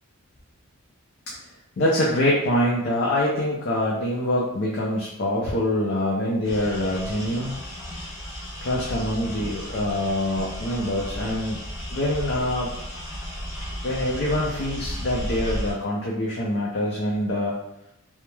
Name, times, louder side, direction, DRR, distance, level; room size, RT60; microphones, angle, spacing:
voice 1, 1.8-7.5 8.6-11.6 11.9-12.7 13.8-17.6, left 1 dB, 50° left, -4 dB, 0.4 m, -25 dB
sound 1, 6.4-15.7, equal, 70° left, 0.8 m, -34 dB
2.2 x 2.0 x 3.0 m, 0.80 s
head